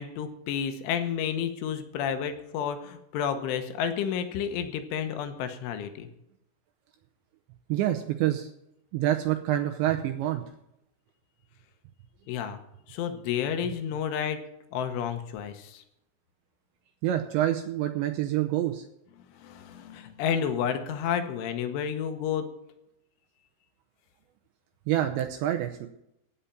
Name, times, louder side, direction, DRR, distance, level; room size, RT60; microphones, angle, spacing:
voice 1, 0.0-6.1 12.3-12.6 12.9-14.4 14.7-15.8 19.3-22.5, left 8 dB, 75° left, 8 dB, 3.3 m, -31 dB
voice 2, 7.7-8.5 8.9-10.4 17.0-18.8 24.9-25.9, right 12 dB, 85° right, 5 dB, 2.7 m, -27 dB
16.0 x 5.7 x 8.8 m, 0.81 s
omnidirectional pair, 5.9 m